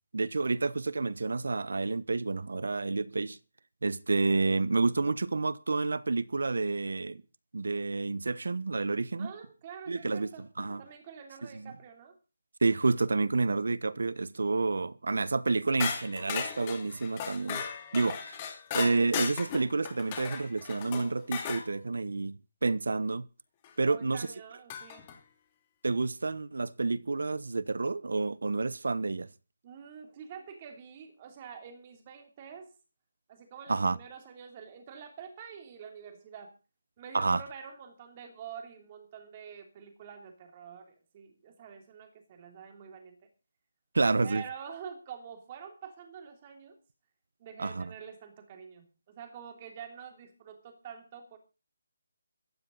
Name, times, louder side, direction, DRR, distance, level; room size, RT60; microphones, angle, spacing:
voice 1, 0.1-3.4 3.8-7.2 7.5-9.3 9.9-10.3 10.6-10.8 11.5-11.7 12.6-17.6 17.9-18.4 18.7-23.3 23.8-24.3 25.8-29.3 33.7-34.0 37.1-37.4 43.9-44.4 47.6-47.9, right 3 dB, 80° right, 1.0 m, -29 dB
voice 2, 9.2-10.5 10.8-12.2 23.8-25.1 29.6-32.7 33.3-36.5 37.0-43.3 44.2-46.8 47.4-51.4, right 7 dB, 25° right, 3.2 m, -47 dB
sound 1, 15.8-21.6 23.6-23.7 24.7-25.1, left 7 dB, 20° left, 2.7 m, -36 dB
15.5 x 14.0 x 4.1 m
hypercardioid pair, 170°, 0 cm